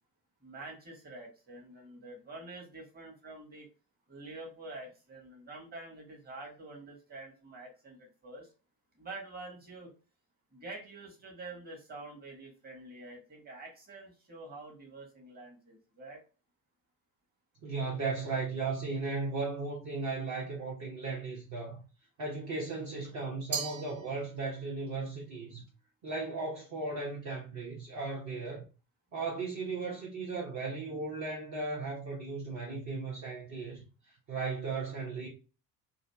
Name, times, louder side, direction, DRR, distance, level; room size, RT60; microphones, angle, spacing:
voice 1, 0.4-3.7 4.1-8.5 9.0-9.9 10.5-16.2, right 2 dB, 20° right, 1.2 m, -47 dB
voice 2, 17.6-21.8 22.2-25.6 26.0-28.6 29.1-33.8 34.3-35.3, right 3 dB, 35° right, 0.9 m, -36 dB
Glass, 23.5-24.7, right 8 dB, 85° right, 0.6 m, -39 dB
2.6 x 2.5 x 2.2 m
figure-of-eight pair, 65°, 48 cm